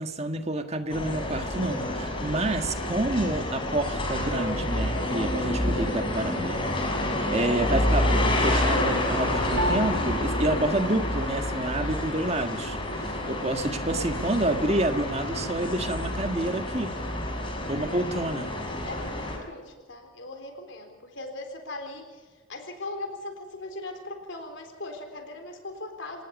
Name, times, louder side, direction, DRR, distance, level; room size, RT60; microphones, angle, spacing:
voice 1, 0.0-6.6 7.3-16.9 17.7-18.5, right 2 dB, 35° right, 6 dB, 1.7 m, -28 dB
sound 1, 0.9-19.4, left 1 dB, 25° left, 5.5 m, -28 dB
Piano, 9.6-19.2, left 2 dB, 80° right, 2.4 m, -40 dB
voice 2, 18.8-26.2, left 2 dB, 80° left, 5 dB, 3.9 m, -40 dB
27.5 x 19.0 x 5.4 m, 1.4 s
head